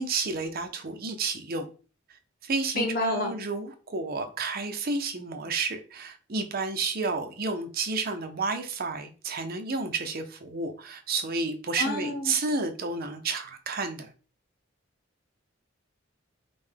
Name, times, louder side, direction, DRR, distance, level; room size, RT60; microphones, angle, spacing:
voice 1, 0.0-1.7 2.4-14.1, right 3 dB, 50° right, 0.6 m, -31 dB
voice 2, 2.7-3.3 11.8-12.4, left 1 dB, 45° left, 0.9 m, -29 dB
5.3 x 2.2 x 3.4 m
head